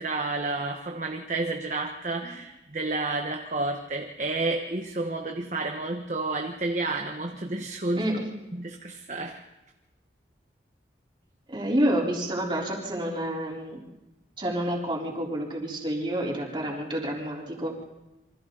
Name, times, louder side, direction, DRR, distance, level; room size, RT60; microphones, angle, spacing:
voice 1, 0.0-8.1 8.5-9.4, right 2 dB, 40° right, 3 dB, 1.3 m, -30 dB
voice 2, 11.5-13.8 14.4-17.8, right 1 dB, 25° right, -2 dB, 4.0 m, -29 dB
27.5 x 24.5 x 4.0 m, 1.0 s
head